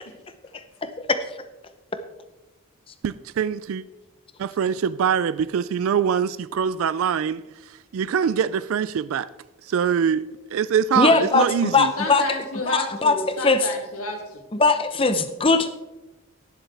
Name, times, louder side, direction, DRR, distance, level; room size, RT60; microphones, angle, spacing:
voice 1, 3.0-3.8 4.4-9.3 9.6-11.9, right 7 dB, 70° right, 0.3 m, -24 dB
voice 2, 11.0-12.2 12.7-13.7 14.5-15.8, left 3 dB, 25° left, 0.7 m, -20 dB
voice 3, 12.0-14.4, left 2 dB, 80° left, 2.3 m, -30 dB
17.5 x 7.3 x 3.4 m
head